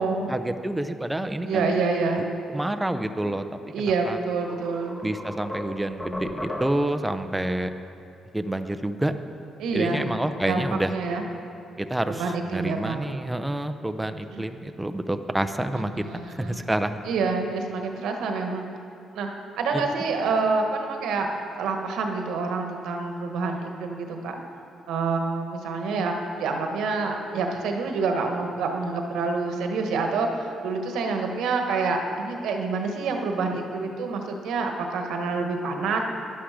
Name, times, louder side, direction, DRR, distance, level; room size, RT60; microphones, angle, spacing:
voice 1, 0.3-1.9 2.2-2.3 2.5-3.4 3.8-4.2 5.0-7.7 8.3-9.1 9.7-10.9 11.8-17.0 19.7-19.8, right 1 dB, 10° right, 8 dB, 0.6 m, -28 dB
voice 2, 1.5-2.2 3.7-5.0 9.6-10.0 10.5-10.6 10.9-11.2 12.1-13.1 14.3-14.4 15.7-16.6 17.0-18.7 19.1-19.3 19.6-21.3 21.6-24.4 24.9-36.0, right 4 dB, 85° right, 3 dB, 1.3 m, -27 dB
sound 1, 3.9-4.0 4.5-7.1, left 1 dB, 20° left, 1.6 m, -35 dB
11.5 x 11.5 x 5.1 m, 2.6 s
cardioid pair, 90°, 0 cm